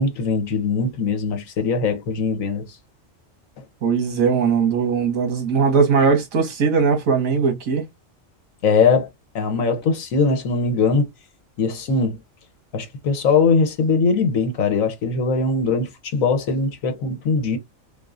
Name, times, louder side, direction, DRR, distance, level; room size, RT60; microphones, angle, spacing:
voice 1, 0.0-2.7 8.6-9.1 9.3-11.1 11.6-12.2 12.7-17.6, left 4 dB, 85° left, 1.4 m, -21 dB
voice 2, 3.8-7.8, right 5 dB, 90° right, 1.6 m, -19 dB
3.8 x 3.6 x 2.5 m
omnidirectional pair, 1.4 m